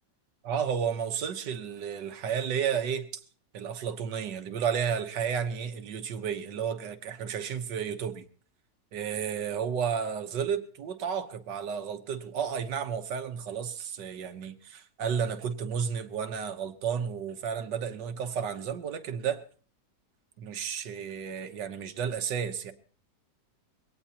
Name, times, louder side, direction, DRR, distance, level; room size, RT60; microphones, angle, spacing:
voice 1, 0.4-3.2 3.5-8.2 8.9-19.4 20.4-22.7, right 7 dB, 80° right, 1.7 m, -32 dB
22.0 x 17.5 x 2.9 m
omnidirectional pair, 1.8 m